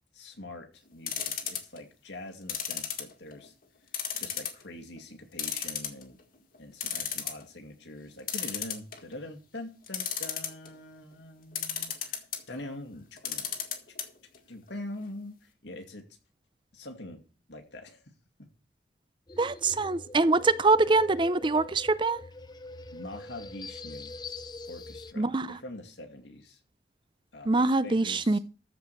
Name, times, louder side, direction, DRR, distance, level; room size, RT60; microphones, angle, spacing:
voice 1, 0.1-3.5 4.2-6.2 6.6-13.5 14.5-16.1 16.7-17.2 17.5-18.0 22.9-24.1 24.7-26.6 27.3-28.4, left 1 dB, 85° left, 2.4 m, -44 dB
sound 1, 1.1-1.8 2.5-3.5 3.9-4.6 5.0-5.1 5.4-6.2 6.5-6.6 6.8-7.4 8.3-9.2 9.9-10.7 11.6-12.4 13.2-14.0 14.3-14.4 14.7-14.8, left 9 dB, 50° left, 1.9 m, -33 dB
sound 2, 19.3-25.1, left 3 dB, 25° left, 0.7 m, -44 dB
voice 2, 19.4-22.2 25.2-25.6 27.5-28.4, right 3 dB, 25° right, 0.5 m, -24 dB
14.0 x 5.0 x 7.6 m
head